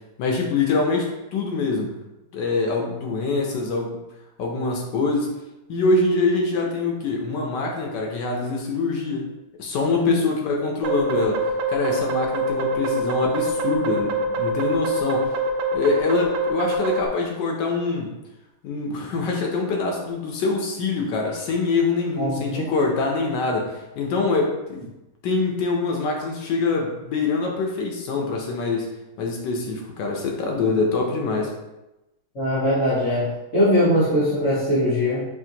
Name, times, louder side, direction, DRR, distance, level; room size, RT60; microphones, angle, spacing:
voice 1, 0.2-1.9 2.3-4.0 4.4-5.4 5.7-9.3 9.6-11.4 11.7-15.3 15.7-18.1 18.6-24.8 25.2-28.9 29.2-31.5, left 3 dB, 80° left, 0 dB, 1.3 m, -24 dB
sound 1, 10.8-17.1, right 1 dB, 80° right, 0.7 m, -24 dB
voice 2, 22.2-22.7 32.4-35.3, equal, 45° left, -12 dB, 1.6 m, -21 dB
6.0 x 2.5 x 2.8 m, 0.97 s
omnidirectional pair, 1.9 m